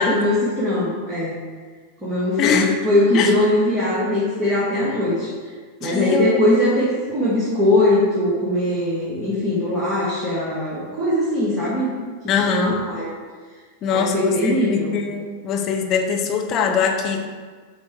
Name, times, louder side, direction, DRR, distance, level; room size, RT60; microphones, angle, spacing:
voice 1, 0.0-1.3 2.0-5.3 5.8-11.9 12.3-13.1 13.9-15.0, left 1 dB, 20° right, -9 dB, 2.0 m, -21 dB
voice 2, 2.4-2.7 3.1-3.3 5.8-6.4 12.3-12.7 13.8-17.3, left 6 dB, 35° left, 2 dB, 0.9 m, -22 dB
8.1 x 3.7 x 4.7 m, 1.5 s
figure-of-eight pair, 90°, 0 cm